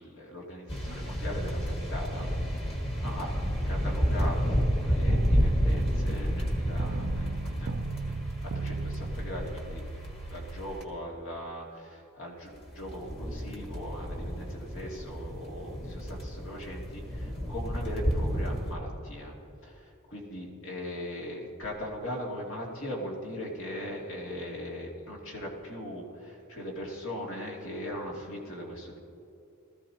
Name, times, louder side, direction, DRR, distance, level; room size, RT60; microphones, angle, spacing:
voice 1, 0.0-2.3 2.6-2.7 3.0-7.7 8.5-9.8 10.3-19.3 19.6-29.0, left 1 dB, 65° left, -2 dB, 2.6 m, -39 dB
sound 1, 0.7-10.8 12.6-18.7, equal, 25° left, 1.8 m, -31 dB
sound 2, 5.1-10.6, right 4 dB, 60° right, 0.5 m, -37 dB
19.5 x 14.0 x 2.9 m, 2.8 s
head